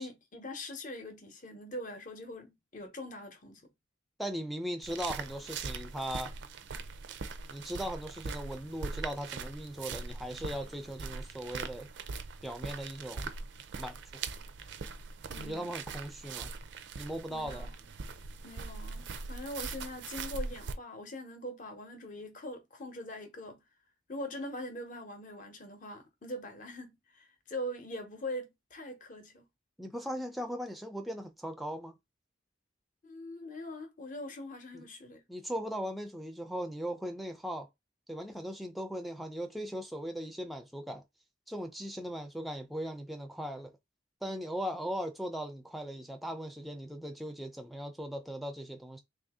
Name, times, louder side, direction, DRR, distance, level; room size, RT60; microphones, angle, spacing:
voice 1, 0.0-3.7 15.3-15.7 17.3-17.7 18.4-23.6 24.1-29.4 33.0-35.2, left 1 dB, 40° left, 0.8 m, -42 dB
voice 2, 4.2-6.3 7.5-11.9 12.4-13.3 13.8-14.2 15.4-16.5 17.0-17.7 29.8-31.9 34.7-34.9 35.3-37.7 38.1-41.0 41.5-43.7 44.2-49.0, equal, ahead, 0.4 m, -38 dB
sound 1, 4.8-20.7, right 4 dB, 65° right, 0.4 m, -41 dB
3.4 x 2.6 x 3.5 m
head